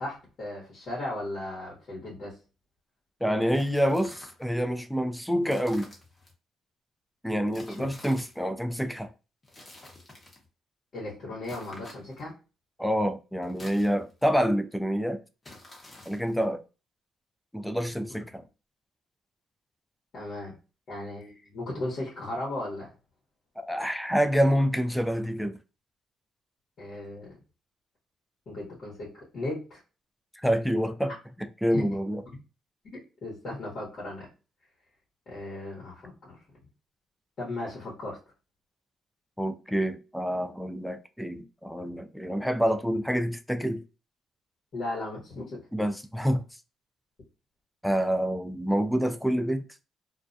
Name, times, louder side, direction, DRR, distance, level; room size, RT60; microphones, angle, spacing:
voice 1, 0.0-2.4 7.7-7.9 10.9-12.3 20.1-20.5 20.9-22.9 26.8-27.4 28.5-29.8 31.7-31.8 33.2-34.3 35.3-36.4 37.4-38.2 44.7-45.6, left 2 dB, 55° left, 1.0 m, -36 dB
voice 2, 3.2-5.9 7.2-9.1 12.8-15.2 16.1-16.6 17.5-18.4 23.6-25.6 30.4-31.1 31.4-32.2 39.4-43.8 45.7-46.4 47.8-49.7, equal, ahead, 0.3 m, -27 dB
sound 1, 3.5-4.4 5.4-6.3 7.5-8.4 9.4-10.5 11.4-12.3 13.4-14.3 15.4-16.4, left 2 dB, 30° left, 0.9 m, -49 dB
2.3 x 2.2 x 2.5 m
cardioid pair, 90°, 0 cm